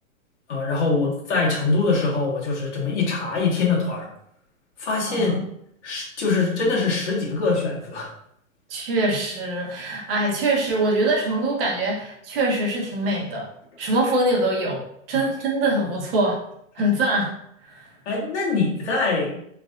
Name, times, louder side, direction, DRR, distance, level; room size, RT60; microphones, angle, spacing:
voice 1, 0.5-4.1 4.8-5.4 5.8-8.1 15.1-15.3 18.0-19.4, left 3 dB, 55° left, -4 dB, 1.4 m, -23 dB
voice 2, 5.1-5.4 8.7-13.5 13.8-14.8 15.1-16.4 16.7-17.3 17.7-17.8, right 1 dB, 45° right, -2 dB, 1.0 m, -23 dB
3.2 x 2.6 x 2.5 m, 0.72 s
hypercardioid pair, 160°, 40 cm